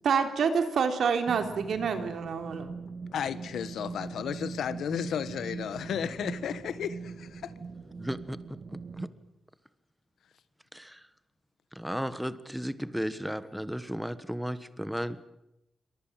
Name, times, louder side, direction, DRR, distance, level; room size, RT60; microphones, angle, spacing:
voice 1, 0.0-2.7, right 6 dB, 70° right, 7 dB, 3.5 m, -27 dB
sound 1, 1.3-9.1, right 5 dB, 45° right, 2.4 m, -41 dB
voice 2, 3.1-7.5, left 8 dB, 90° left, 13 dB, 1.7 m, -33 dB
voice 3, 8.0-8.4 9.0-9.1 10.7-11.0 11.7-15.2, equal, ahead, 13 dB, 1.3 m, -34 dB
28.0 x 24.0 x 7.7 m, 0.86 s
wide cardioid pair, 130°, 0 cm